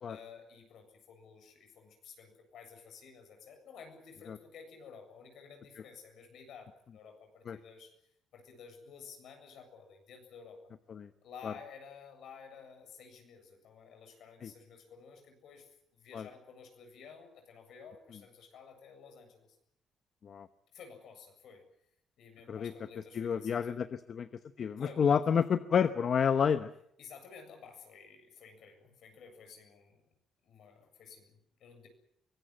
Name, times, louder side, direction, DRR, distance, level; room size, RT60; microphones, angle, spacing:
voice 1, 0.0-7.9 8.3-10.6 11.2-19.5 20.7-21.6 22.2-23.8 24.8-25.2 27.0-30.1 30.4-31.9, left 6 dB, 75° left, 5 dB, 7.6 m, -53 dB
voice 2, 23.1-24.3 24.6-26.7, left 7 dB, 55° left, 11 dB, 1.0 m, -29 dB
24.0 x 18.5 x 9.1 m, 0.73 s
cardioid pair, 90°, 0 cm